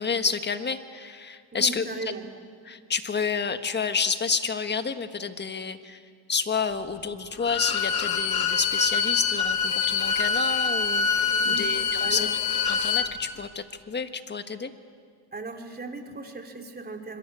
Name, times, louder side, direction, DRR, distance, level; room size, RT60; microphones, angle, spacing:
voice 1, 0.0-1.8 2.6-6.0 6.3-11.1 11.4-12.3 12.7-14.7, left 5 dB, 25° left, 9 dB, 1.5 m, -29 dB
voice 2, 1.5-2.3 11.3-12.3 15.3-17.2, right 3 dB, 20° right, 3 dB, 3.2 m, -37 dB
Bowed string instrument, 7.4-13.1, left 6 dB, 50° left, 2.2 m, -25 dB
26.0 x 22.5 x 8.4 m, 2.1 s
cardioid pair, 105°, 46 cm